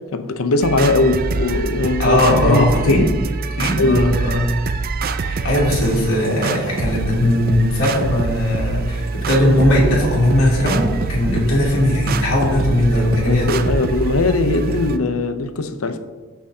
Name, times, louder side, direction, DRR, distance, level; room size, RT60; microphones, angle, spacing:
voice 1, 0.1-3.1 3.8-4.3 13.2-16.0, left 2 dB, 85° left, 0.7 m, -20 dB
sound 1, 0.6-15.0, right 3 dB, 45° right, 0.4 m, -25 dB
voice 2, 2.0-3.1 3.5-4.5 5.2-13.6, left 1 dB, 70° left, 2.9 m, -18 dB
14.0 x 6.0 x 2.8 m
head